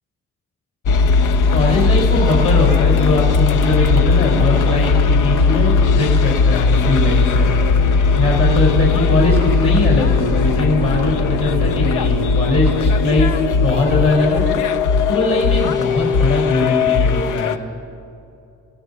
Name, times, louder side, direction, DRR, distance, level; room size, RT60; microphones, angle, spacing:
sound 1, 0.9-17.6, left 4 dB, 90° left, 0.9 m, -17 dB
voice 1, 1.5-7.5 8.2-13.3 13.6-14.4 15.1-17.6, left 3 dB, 45° left, -3 dB, 5.5 m, -20 dB
29.0 x 17.5 x 5.8 m, 2.6 s
cardioid pair, 90°, 30 cm